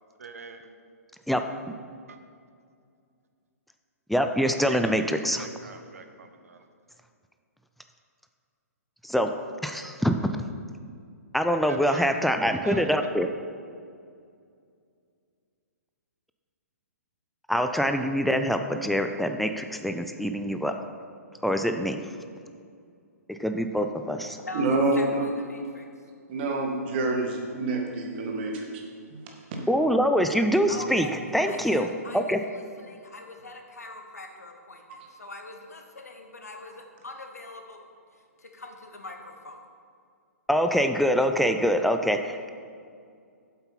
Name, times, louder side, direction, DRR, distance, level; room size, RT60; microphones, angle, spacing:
voice 1, 0.2-0.8 2.1-2.2 4.6-6.7 11.6-12.2 12.6-12.9, right 5 dB, 65° right, 7 dB, 0.9 m, -43 dB
voice 2, 4.1-5.5 9.0-9.3 9.6-10.4 11.3-13.3 17.5-20.7 21.4-22.0 23.3-24.4 29.7-31.1 31.3-31.9 32.1-32.4 40.5-42.5, equal, ahead, 6 dB, 0.4 m, -24 dB
voice 3, 24.5-25.3 26.3-28.8 29.1-29.6, right 2 dB, 40° right, 1 dB, 1.8 m, -27 dB
voice 4, 25.5-25.9 30.7-31.1 31.5-37.8 38.1-39.6, left 2 dB, 75° left, 3 dB, 1.3 m, -42 dB
7.9 x 7.7 x 5.7 m, 2.3 s
figure-of-eight pair, 120°, 9 cm